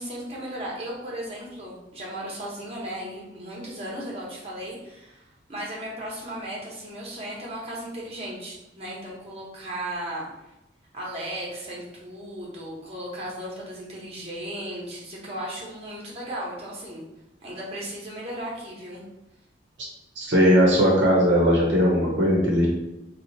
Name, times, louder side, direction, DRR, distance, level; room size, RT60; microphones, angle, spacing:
voice 1, 0.0-10.3 10.9-17.0 17.4-19.0, right 1 dB, 35° right, -4 dB, 1.0 m, -36 dB
voice 2, 20.2-22.7, equal, 70° right, -2 dB, 0.8 m, -19 dB
2.9 x 2.4 x 4.0 m, 0.90 s
head